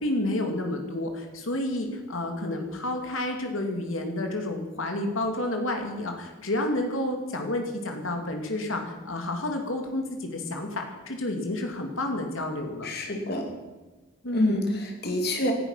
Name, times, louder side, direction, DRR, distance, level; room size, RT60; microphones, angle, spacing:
voice 1, 0.0-12.9 14.2-14.6, left 1 dB, 70° left, 4 dB, 2.7 m, -30 dB
voice 2, 12.8-13.5 14.3-15.5, left 1 dB, 45° left, 3 dB, 2.7 m, -27 dB
18.0 x 12.0 x 5.9 m, 1.2 s
head